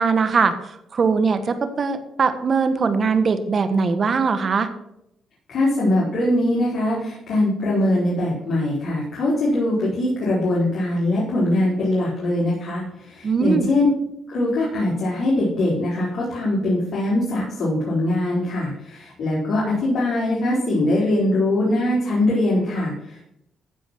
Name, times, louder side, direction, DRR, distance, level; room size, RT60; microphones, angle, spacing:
voice 1, 0.0-4.7 13.2-13.7, right 5 dB, 45° right, 9 dB, 1.4 m, -21 dB
voice 2, 5.5-13.9 14.3-23.2, left 1 dB, 55° left, -7 dB, 4.7 m, -22 dB
14.5 x 5.2 x 6.1 m, 0.80 s
cardioid pair, 90°, 0 cm